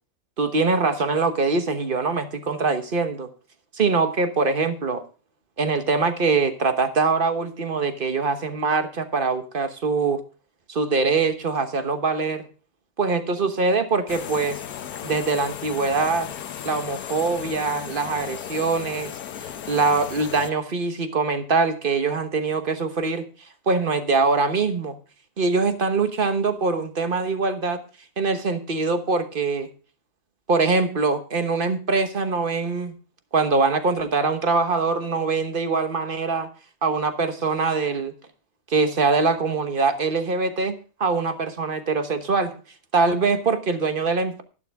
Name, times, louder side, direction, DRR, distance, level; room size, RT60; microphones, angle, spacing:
voice 1, 0.4-3.3 3.7-5.0 5.6-10.2 10.7-12.5 13.0-14.6 15.0-16.3 16.6-19.1 19.4-23.2 23.7-25.0 25.4-27.8 28.2-29.7 30.5-32.9 33.3-36.5 36.8-38.1 38.7-40.7 41.0-42.5 42.9-44.4, right 4 dB, 40° right, 8 dB, 1.2 m, -23 dB
sound 1, 14.1-20.5, left 9 dB, 90° left, 1.3 m, -35 dB
11.5 x 11.5 x 3.5 m, 0.35 s
omnidirectional pair, 1.5 m